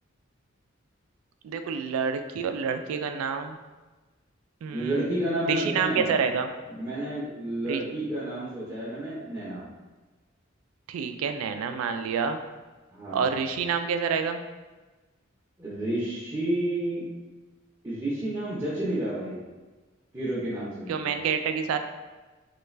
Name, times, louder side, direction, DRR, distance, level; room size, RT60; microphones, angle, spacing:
voice 1, 1.4-3.6 4.6-5.0 5.5-6.5 7.7-7.8 10.9-12.4 13.1-14.4 20.9-21.8, right 6 dB, 90° right, 8 dB, 0.3 m, -28 dB
voice 2, 4.7-6.1 6.7-9.7 12.9-13.3 15.6-17.0 17.8-19.4 20.1-21.1, right 1 dB, 15° right, -10 dB, 0.7 m, -30 dB
3.2 x 2.4 x 3.1 m, 1.2 s
head